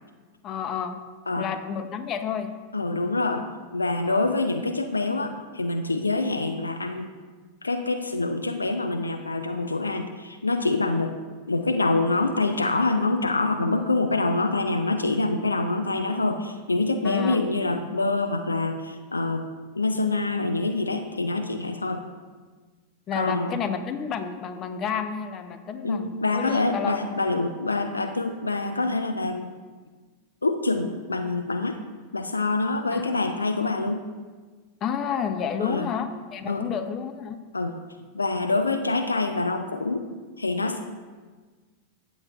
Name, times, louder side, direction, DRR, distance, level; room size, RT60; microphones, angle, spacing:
voice 1, 0.4-1.0 1.4-2.5 4.1-4.2 17.0-17.4 23.1-27.0 32.9-33.3 34.8-37.4, left 7 dB, 30° left, 9 dB, 0.6 m, -30 dB
voice 2, 2.7-3.5 3.7-7.1 7.6-11.1 11.5-19.4 19.7-22.0 23.1-23.5 25.8-29.5 30.4-31.8 32.1-34.0 35.6-35.9 36.5-36.7 37.5-37.7 38.0-40.1 40.4-40.8, left 2 dB, 80° left, 7 dB, 0.5 m, -26 dB
14.5 x 7.2 x 2.4 m, 1.4 s
figure-of-eight pair, 90°, 0 cm